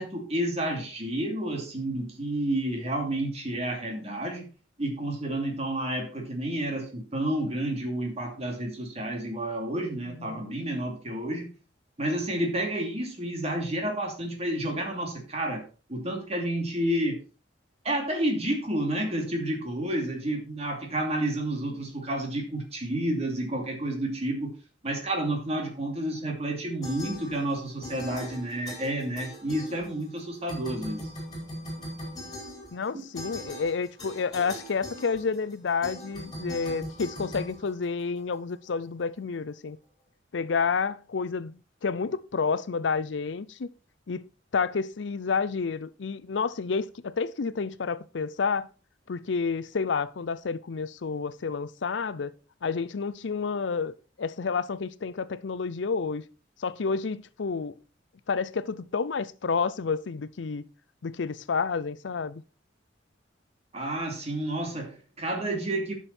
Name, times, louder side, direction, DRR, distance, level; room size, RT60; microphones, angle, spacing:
voice 1, 0.0-4.5 4.8-11.5 12.0-15.6 15.9-17.2 17.8-24.5 24.8-31.1 63.7-65.9, right 1 dB, 35° right, 2.7 m, -30 dB
voice 2, 10.1-10.6 32.7-39.8 40.3-43.7 44.1-44.2 44.5-48.7 49.1-52.3 52.6-56.3 56.6-57.8 58.3-60.6 61.0-62.4, left 5 dB, 75° left, 0.5 m, -30 dB
sound 1, 26.8-27.6 27.8-30.2 30.5-38.3, left 1 dB, 20° left, 4.7 m, -40 dB
11.0 x 6.3 x 4.3 m
head